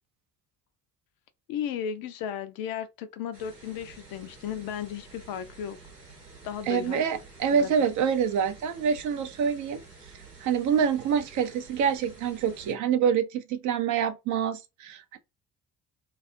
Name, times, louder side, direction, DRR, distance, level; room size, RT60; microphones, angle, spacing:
voice 1, 1.5-5.8 6.4-7.0 7.5-7.7, left 8 dB, 50° left, 0.5 m, -35 dB
sound 1, 3.3-12.7, right 3 dB, 90° right, 0.9 m, -50 dB
voice 2, 6.7-9.8 10.4-15.2, right 7 dB, 40° right, 0.5 m, -26 dB
2.4 x 2.3 x 2.5 m
figure-of-eight pair, 50°, 47 cm